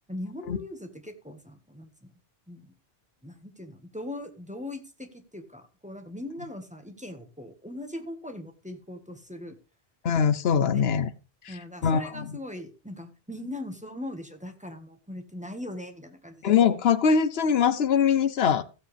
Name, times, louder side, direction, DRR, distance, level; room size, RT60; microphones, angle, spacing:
voice 1, 0.1-2.1 2.5-2.7 3.2-9.6 10.5-10.9 11.5-16.8, left 1 dB, 5° right, 5 dB, 1.5 m, -40 dB
voice 2, 10.0-11.1 11.4-11.6 11.8-12.4 16.4-18.6, left 7 dB, 80° left, 14 dB, 1.0 m, -22 dB
16.5 x 7.6 x 3.4 m, 0.32 s
omnidirectional pair, 1.0 m